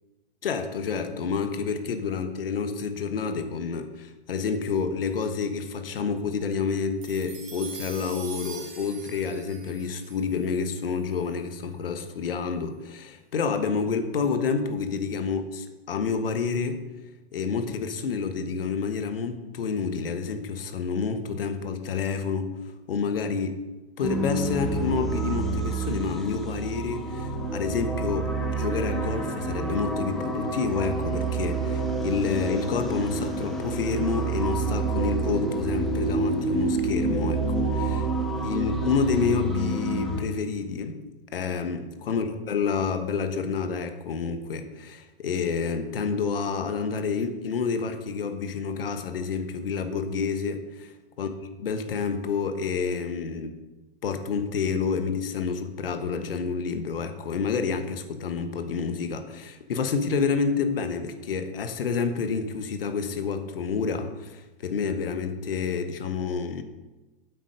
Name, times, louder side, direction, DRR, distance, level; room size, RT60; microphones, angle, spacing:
voice 1, 0.4-16.8 17.3-22.5 22.9-23.5 24.0-38.1 38.4-41.0 41.3-50.8 51.2-51.3 51.6-53.6 54.0-66.6, left 5 dB, 70° left, 8 dB, 1.3 m, -29 dB
sound 1, 7.0-11.5, right 6 dB, 45° right, 2.6 m, -44 dB
sound 2, 24.0-40.2, right 3 dB, ahead, 1.6 m, -28 dB
8.1 x 8.0 x 5.3 m, 1.1 s
figure-of-eight pair, 105°, 30 cm